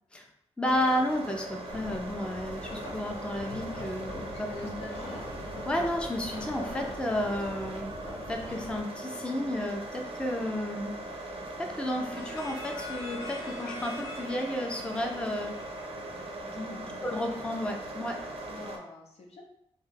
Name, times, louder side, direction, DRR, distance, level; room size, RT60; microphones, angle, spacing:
voice 1, 0.6-4.7 5.7-7.9 8.3-10.9 11.6-15.5 16.5-16.7 17.0-18.2, left 1 dB, 10° left, 2 dB, 0.4 m, -32 dB
sound 1, 0.6-18.8, right 2 dB, 60° right, 0.5 m, -40 dB
sound 2, 1.7-8.8, left 1 dB, 85° left, 1.2 m, -42 dB
voice 2, 4.3-5.5 16.4-17.2 18.4-19.4, left 3 dB, 70° left, 0 dB, 0.6 m, -47 dB
sound 3, 12.1-16.7, left 3 dB, 35° left, 0.9 m, -45 dB
2.2 x 2.1 x 3.2 m, 0.75 s
cardioid pair, 60°, 11 cm